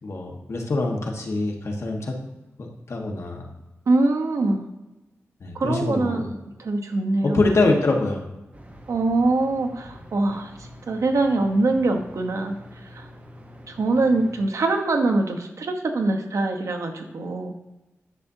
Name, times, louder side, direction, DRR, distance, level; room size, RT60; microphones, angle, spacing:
voice 1, 0.0-2.1 2.6-3.5 5.4-6.2 7.2-8.2, left 2 dB, 60° left, 1 dB, 1.3 m, -24 dB
voice 2, 3.9-4.7 5.5-6.3 6.6-7.4 8.9-13.1 13.7-17.5, right 2 dB, 85° right, 4 dB, 1.0 m, -23 dB
sound 1, 8.5-14.5, equal, 30° right, 1.0 m, -45 dB
10.5 x 7.0 x 2.7 m, 1.0 s
wide cardioid pair, 100°, 5 cm